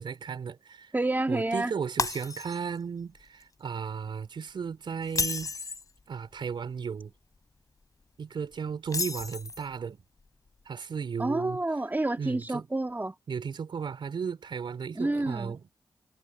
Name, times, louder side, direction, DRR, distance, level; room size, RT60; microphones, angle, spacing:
voice 1, 0.0-0.9 1.3-5.5 6.1-7.1 8.2-10.0 10.7-11.6 12.2-12.7 13.3-15.7, right 6 dB, 70° right, 4.3 m, -35 dB
voice 2, 0.9-1.7 11.2-13.1 15.0-15.5, right 2 dB, 20° right, 2.1 m, -29 dB
Shatter, 2.0-2.8 3.2-3.4 5.0-5.9 8.9-9.7, left 3 dB, 40° left, 6.9 m, -32 dB
cardioid pair, 50°, 8 cm